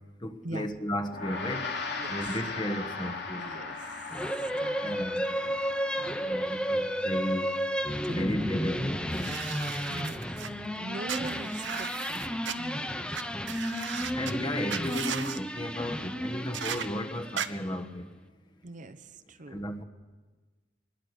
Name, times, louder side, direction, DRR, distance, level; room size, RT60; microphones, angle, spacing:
voice 1, 0.2-1.7 2.1-3.5 4.8-5.4 6.2-7.5 8.1-9.4 14.1-18.1 19.5-19.8, left 1 dB, 25° left, 5 dB, 1.4 m, -34 dB
Gong, 1.1-10.7, left 3 dB, 65° left, 2.8 m, -40 dB
voice 2, 3.4-5.1 5.4-5.6 8.0-8.6 9.6-13.0 18.6-19.6, right 2 dB, 45° right, 11 dB, 0.8 m, -42 dB
sound 1, 4.1-17.7, equal, 5° left, 0.8 m, -32 dB
sound 2, 9.1-10.5 11.1-12.5 13.1-13.2 13.5-14.3 14.7-15.4 16.5-16.9 17.4-17.5, right 8 dB, 85° right, 0.9 m, -36 dB
22.5 x 21.0 x 6.6 m, 1.3 s
head